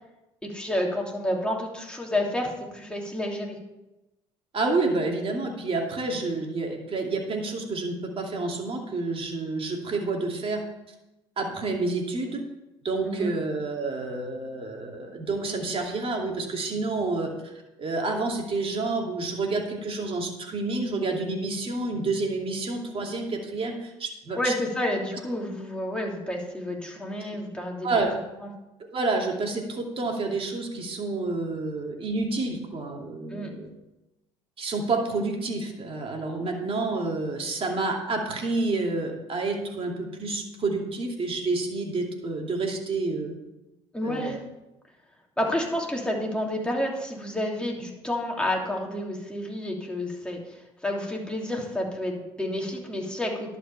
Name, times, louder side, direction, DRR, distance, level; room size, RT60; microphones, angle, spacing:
voice 1, 0.4-3.6 13.0-13.3 24.3-27.9 28.4-28.5 33.3-33.5 43.9-44.4 45.4-53.6, left 1 dB, 5° left, -1 dB, 3.0 m, -30 dB
voice 2, 4.5-10.6 11.4-12.4 12.8-17.3 17.8-24.5 27.8-28.1 28.8-33.7 34.6-43.4 44.0-44.4, right 3 dB, 45° right, 1 dB, 2.5 m, -29 dB
11.5 x 5.5 x 7.0 m, 0.98 s
hypercardioid pair, 60°, 13 cm